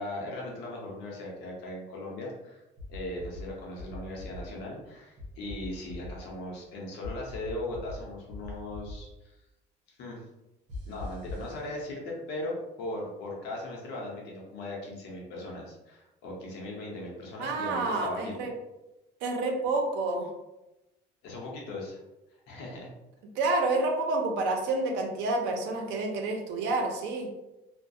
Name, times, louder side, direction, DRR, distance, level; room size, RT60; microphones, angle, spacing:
voice 1, 0.0-2.6 2.9-9.4 9.9-10.2 10.8-18.3 21.2-22.0 22.5-22.9, left 1 dB, 75° left, -3 dB, 0.7 m, -38 dB
sound 1, 2.8-3.4 3.8-4.4 5.2-6.1 7.0-8.0 8.3-9.0 10.7-11.5, left 2 dB, 45° right, 0.7 m, -40 dB
voice 2, 17.4-18.5 19.2-20.3 23.4-27.3, right 2 dB, 85° right, 2 dB, 0.6 m, -29 dB
2.3 x 2.1 x 2.6 m, 0.98 s
cardioid pair, 165°, 18 cm